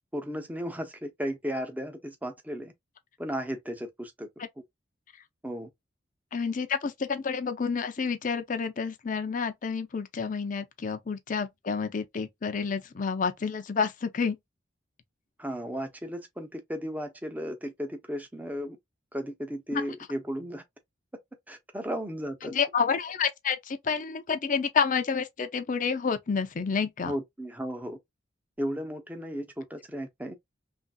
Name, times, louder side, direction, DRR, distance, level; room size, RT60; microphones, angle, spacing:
voice 1, 0.1-2.7 3.2-4.3 5.4-5.7 15.4-18.8 19.1-20.6 21.5-22.5 27.0-28.0 28.6-30.4, equal, 10° right, 0.6 m, -35 dB
voice 2, 6.3-14.4 19.7-19.8 22.4-27.1, left 5 dB, 45° left, 0.5 m, -29 dB
3.1 x 2.6 x 2.2 m
head